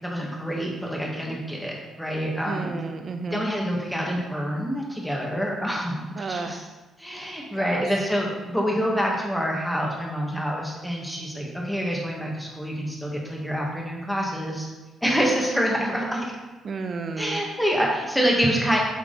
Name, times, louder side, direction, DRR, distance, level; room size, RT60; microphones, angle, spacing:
voice 1, 0.0-2.8 3.3-6.6 7.0-14.7 15.0-16.3 17.2-18.8, equal, 5° left, -2 dB, 1.8 m, -26 dB
voice 2, 2.4-3.5 6.2-6.7 7.5-8.0 16.6-17.4, right 4 dB, 50° right, 6 dB, 0.8 m, -32 dB
8.1 x 4.5 x 4.0 m, 1.2 s
cardioid pair, 90°, 0 cm